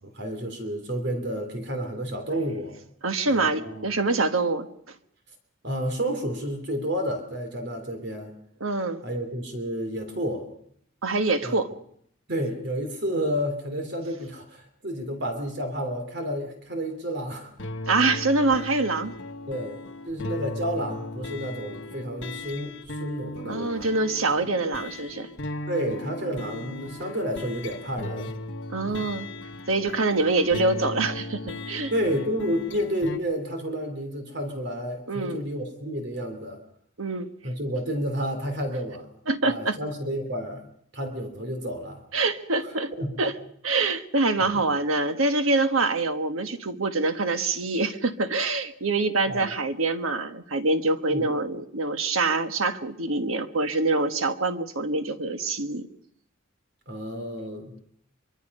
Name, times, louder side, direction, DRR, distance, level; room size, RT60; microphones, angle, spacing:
voice 1, 0.0-2.8 3.3-3.9 5.6-8.3 9.0-10.4 11.4-11.6 12.3-17.5 19.5-23.9 25.7-28.3 28.9-29.1 31.9-36.6 37.4-39.0 39.4-42.0 42.6-42.7 43.0-43.2 44.4-44.6 49.3-49.5 51.1-51.3 56.9-57.7, equal, 55° right, 5 dB, 3.3 m, -30 dB
voice 2, 3.0-4.7 8.6-9.0 11.0-11.7 17.9-19.2 23.5-25.3 28.7-29.3 29.7-31.9 35.1-35.4 37.0-37.3 39.3-39.8 42.1-42.9 43.2-43.3 43.6-55.9, right 3 dB, 90° right, 8 dB, 1.4 m, -25 dB
sound 1, 17.6-33.2, left 2 dB, 60° left, 1.5 m, -37 dB
24.0 x 24.0 x 5.5 m, 0.67 s
head